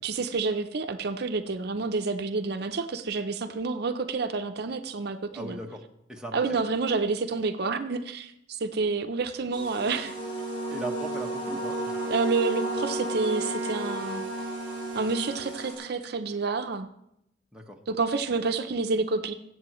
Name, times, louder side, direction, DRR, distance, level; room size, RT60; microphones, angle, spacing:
voice 1, 0.0-5.6 6.3-10.2 12.1-14.3 14.9-16.9 17.9-19.3, right 4 dB, 60° right, 7 dB, 0.5 m, -29 dB
voice 2, 5.3-5.8 6.1-6.4 10.7-12.0 17.5-17.8, right 1 dB, 5° right, 0 dB, 1.1 m, -38 dB
sound 1, 9.5-15.7, right 2 dB, 30° left, 3.4 m, -34 dB
Bowed string instrument, 10.0-16.1, right 1 dB, 75° right, 0.9 m, -38 dB
23.0 x 7.7 x 3.1 m, 0.81 s
head